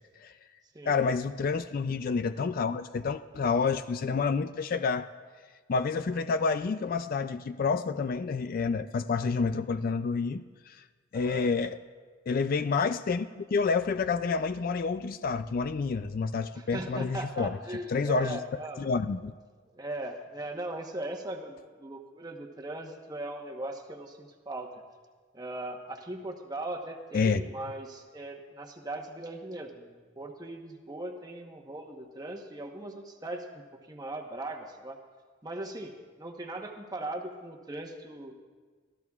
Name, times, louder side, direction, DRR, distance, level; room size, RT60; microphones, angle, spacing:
voice 1, 0.9-5.1 5.7-10.8 11.1-11.8 12.3-17.6 17.9-18.4 18.8-19.3 27.1-27.4, left 5 dB, 45° left, 11 dB, 0.3 m, -29 dB
voice 2, 11.1-11.5 16.5-18.8 19.7-24.7 25.3-33.6 33.9-35.0 35.4-38.3, right 1 dB, 20° right, 2 dB, 1.1 m, -39 dB
24.0 x 14.0 x 2.4 m, 1.5 s
head